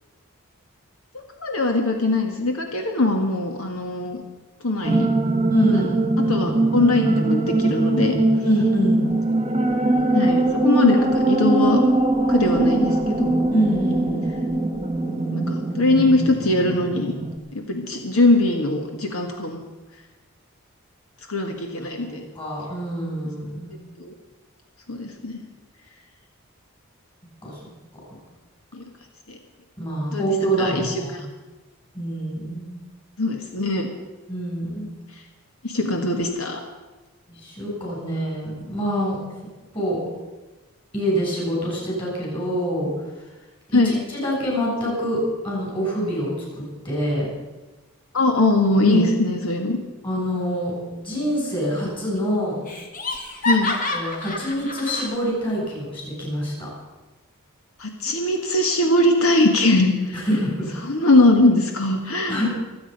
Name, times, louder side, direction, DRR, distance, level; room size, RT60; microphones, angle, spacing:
voice 1, 1.1-4.2 4.6-5.1 5.7-5.9 6.3-8.2 10.1-11.8 12.3-13.3 15.3-17.1 17.5-19.6 21.3-22.2 24.0-24.1 24.9-25.4 28.7-28.8 29.3-29.4 30.1-30.2 30.6-30.9 33.2-33.9 35.6-36.6 43.7-44.0 48.1-49.8 53.4-53.7 57.8-60.1 60.9-62.4, left 2 dB, 80° left, 3 dB, 1.6 m, -21 dB
sound 1, 4.8-17.4, right 2 dB, 25° right, 1.0 m, -21 dB
voice 2, 5.5-6.0 8.4-9.1 13.5-14.4 22.0-23.7 27.4-27.6 29.8-31.2 31.9-32.6 34.3-34.9 37.3-39.2 39.7-40.0 40.9-42.9 43.7-46.5 46.8-47.3 48.8-49.0 50.0-52.6 53.9-56.7 60.1-60.7 62.0-62.4, equal, 25° left, -3 dB, 7.1 m, -25 dB
Laughter, 51.4-51.9 52.2-52.3 52.7-55.1, left 2 dB, 40° left, 1.9 m, -28 dB
25.5 x 8.8 x 5.3 m, 1.2 s
head